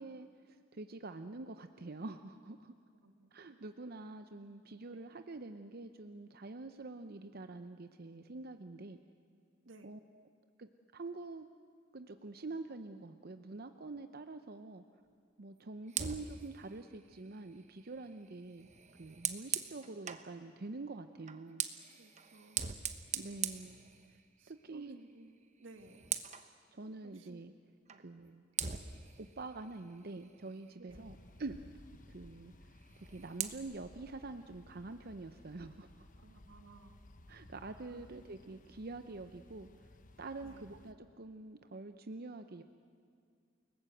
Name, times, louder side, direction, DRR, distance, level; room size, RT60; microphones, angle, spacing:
voice 1, 0.0-2.7 3.3-9.0 9.8-10.2 10.6-11.5 11.9-14.8 15.4-18.7 19.0-21.6 23.1-23.8 24.1-24.2 24.5-25.0 26.7-27.5 28.0-28.4 29.2-31.6 32.1-32.5 33.1-35.9 37.3-39.9 40.2-42.6, right 3 dB, 55° right, 9 dB, 0.7 m, -46 dB
voice 2, 3.0-3.9 4.9-5.1 6.7-6.8 9.6-9.9 15.6-15.9 22.0-22.7 24.4-26.0 27.0-27.5 27.9-28.1 30.8-31.0 36.2-37.0 37.8-38.2 40.4-40.7, right 2 dB, 85° right, 7 dB, 1.9 m, -58 dB
Fire, 15.9-20.3 21.2-24.5 24.8-25.1 25.4-26.5 27.9-28.0 28.6-30.9 32.8-33.6, right 8 dB, 40° right, 1.1 m, -42 dB
sound 1, 30.9-40.9, left 1 dB, 45° left, 1.1 m, -58 dB
29.5 x 19.0 x 7.9 m, 2.3 s
head